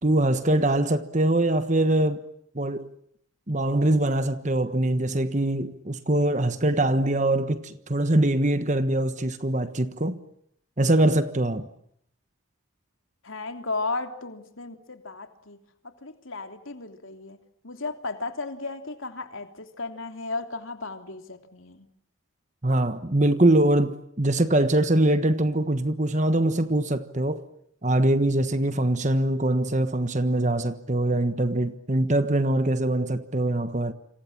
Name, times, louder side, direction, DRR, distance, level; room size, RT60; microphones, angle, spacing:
voice 1, 0.0-2.2 2.5-2.9 3.5-10.2 10.8-11.7 22.6-27.5 27.8-33.9, right 1 dB, 35° right, 1.3 m, -23 dB
voice 2, 13.2-15.6 15.8-17.4 17.6-21.9, left 3 dB, 70° left, 3.2 m, -35 dB
29.5 x 26.5 x 7.4 m
head